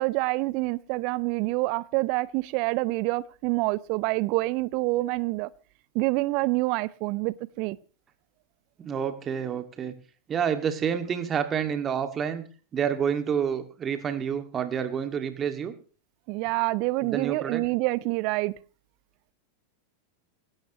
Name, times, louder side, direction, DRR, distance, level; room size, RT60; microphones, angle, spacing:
voice 1, 0.0-5.5 5.9-7.8 16.3-18.5, right 22 dB, 45° right, 0.7 m, -27 dB
voice 2, 8.8-9.9 10.3-12.4 12.7-15.7 17.0-17.6, right 7 dB, 25° right, 2.1 m, -28 dB
27.0 x 13.0 x 3.1 m
figure-of-eight pair, 90°, 0 cm